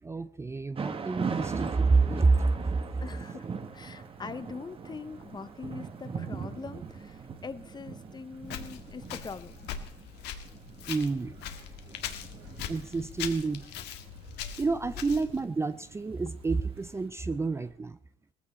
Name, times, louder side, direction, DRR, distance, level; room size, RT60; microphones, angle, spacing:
voice 1, 0.0-3.0 10.8-11.4 12.7-13.7 14.6-18.0, right 3 dB, 15° right, 0.5 m, -28 dB
Thunder / Rain, 0.7-16.8, right 5 dB, 30° right, 1.4 m, -40 dB
sound 1, 2.3-17.7, right 5 dB, 90° right, 3.4 m, -58 dB
voice 2, 3.0-9.6, left 5 dB, 25° left, 0.8 m, -43 dB
Walk footsteps, 8.4-15.4, left 9 dB, 85° left, 1.7 m, -41 dB
19.0 x 15.0 x 4.3 m
cardioid pair, 110°, 17 cm